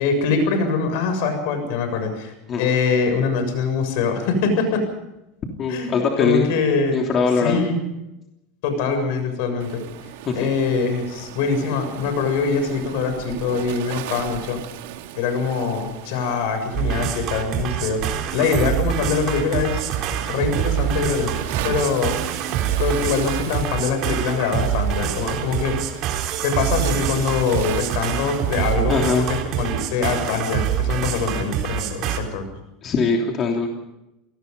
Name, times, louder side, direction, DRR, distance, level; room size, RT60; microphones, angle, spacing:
voice 1, 0.0-4.8 5.7-7.0 7.4-7.8 8.6-9.9 10.3-14.6 15.2-19.9 20.2-21.3 21.6-22.2 22.8-25.7 26.4-32.4, left 5 dB, 70° left, 8 dB, 7.2 m, -23 dB
voice 2, 5.6-6.5 6.9-7.6 10.2-10.4 28.9-29.3 32.8-33.7, left 5 dB, 35° left, 1 dB, 3.2 m, -21 dB
Waves surf, 9.6-28.7, right 12 dB, 80° right, 2.1 m, -37 dB
sound 1, 16.7-32.2, right 10 dB, 45° right, 3.9 m, -25 dB
28.0 x 19.0 x 5.5 m, 0.90 s
supercardioid pair, 140°, 0 cm